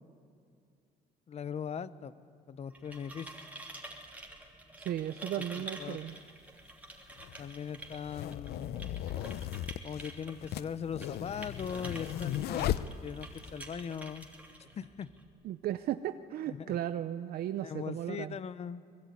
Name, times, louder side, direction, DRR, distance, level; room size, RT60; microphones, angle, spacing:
voice 1, 1.3-2.1 2.5-3.3 5.5-6.0 7.4-8.9 9.8-14.3 14.6-15.1 16.5-16.7 17.6-18.8, left 7 dB, 40° left, 15 dB, 0.9 m, -40 dB
sound 1, 2.6-15.3, right 1 dB, 10° right, 3.0 m, -49 dB
voice 2, 4.8-6.2 15.4-18.4, right 11 dB, 65° right, 11 dB, 0.7 m, -35 dB
sound 2, 6.1-6.2 7.1-13.5, left 12 dB, 70° left, 0.7 m, -37 dB
23.5 x 21.5 x 9.5 m, 2.5 s
cardioid pair, 110°, 17 cm